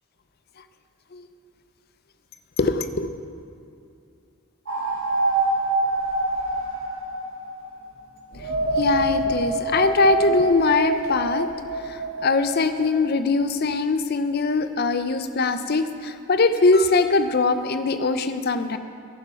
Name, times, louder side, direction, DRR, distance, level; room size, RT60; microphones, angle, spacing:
voice 1, 2.6-3.1 8.5-11.5 11.8-18.8, left 3 dB, 45° left, 10 dB, 0.5 m, -22 dB
sound 1, 4.7-7.8 8.3-13.0, right 2 dB, 65° right, 1.6 m, -26 dB
11.0 x 9.2 x 5.5 m, 2.5 s
head